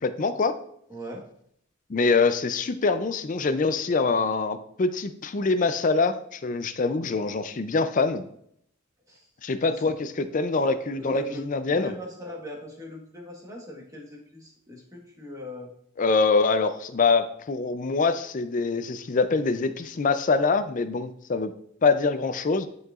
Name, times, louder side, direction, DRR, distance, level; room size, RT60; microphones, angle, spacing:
voice 1, 0.0-0.6 1.9-8.3 9.4-11.9 16.0-21.5 21.8-22.7, left 4 dB, 40° left, 11 dB, 0.4 m, -24 dB
voice 2, 0.9-1.2 9.1-9.3 9.7-9.8 10.5-11.5 11.7-15.7, left 1 dB, 15° right, -1 dB, 1.3 m, -40 dB
10.5 x 4.7 x 2.4 m, 0.69 s
head